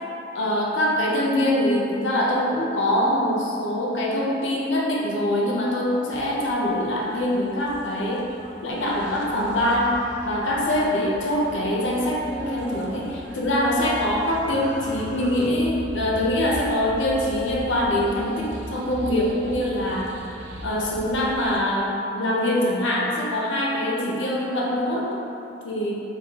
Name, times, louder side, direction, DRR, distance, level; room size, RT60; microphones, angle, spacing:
voice 1, 0.3-8.3 8.6-9.9 10.2-20.1 20.6-25.2 25.6-25.9, left 1 dB, 75° left, -3 dB, 0.6 m, -24 dB
sound 1, 6.1-21.6, right 2 dB, 65° right, 0.4 m, -39 dB
4.3 x 2.6 x 2.9 m, 2.9 s
head